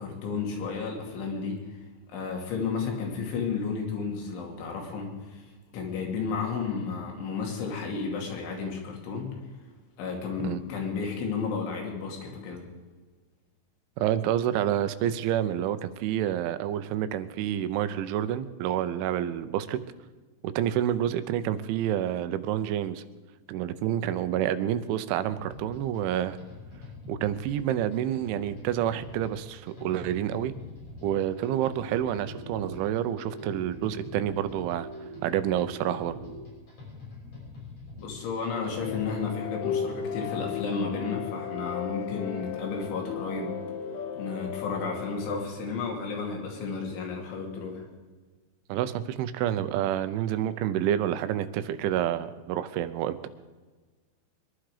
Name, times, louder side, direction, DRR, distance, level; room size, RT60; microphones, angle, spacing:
voice 1, 0.0-1.8 2.1-5.5 5.7-9.3 10.0-12.6 38.0-43.6 44.1-47.8, left 5 dB, 80° left, 0 dB, 5.0 m, -32 dB
voice 2, 14.0-19.8 20.4-23.0 23.5-26.4 27.1-30.5 31.0-34.9 35.2-36.2 48.7-53.2, right 11 dB, 85° right, 12 dB, 3.2 m, -28 dB
sound 1, 25.3-39.2, left 4 dB, 35° left, 6.2 m, -45 dB
sound 2, 31.4-36.4, right 2 dB, 15° right, 3.9 m, -43 dB
sound 3, 38.6-45.5, left 8 dB, 60° left, 2.4 m, -35 dB
23.0 x 11.5 x 5.0 m, 1.3 s
omnidirectional pair, 5.4 m